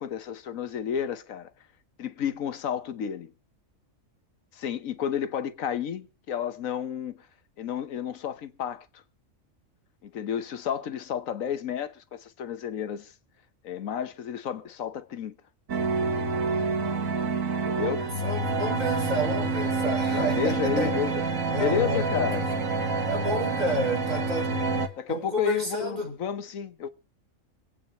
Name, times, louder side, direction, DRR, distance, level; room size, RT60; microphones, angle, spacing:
voice 1, 0.0-1.5 2.0-3.3 4.5-7.2 7.6-9.0 10.0-13.1 13.6-15.3 17.7-18.1 20.1-21.2 21.6-22.4 25.0-26.9, left 8 dB, 90° left, 1.4 m, -31 dB
sound 1, 15.7-24.9, right 4 dB, 85° right, 1.8 m, -27 dB
voice 2, 18.0-21.0 21.4-22.5 23.1-24.6 25.1-26.2, equal, 30° right, 4.7 m, -30 dB
26.0 x 8.8 x 3.0 m
omnidirectional pair, 1.4 m